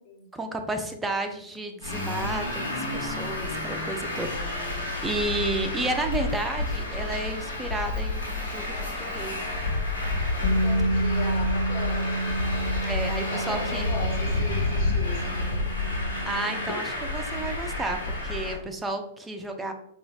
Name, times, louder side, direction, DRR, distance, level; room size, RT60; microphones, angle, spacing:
voice 1, 0.3-9.3 12.8-13.8 16.3-19.7, right 2 dB, 10° right, 4 dB, 0.5 m, -32 dB
Traffic noise roadway noise, 1.8-18.5, left 2 dB, 70° left, 1.2 m, -29 dB
voice 2, 10.4-12.3 12.9-15.7, left 3 dB, 45° left, 0 dB, 1.0 m, -38 dB
Bass guitar, 10.4-16.7, right 1 dB, 20° left, 0.9 m, -30 dB
4.1 x 2.4 x 2.7 m, 0.73 s
hypercardioid pair, 105°, 0 cm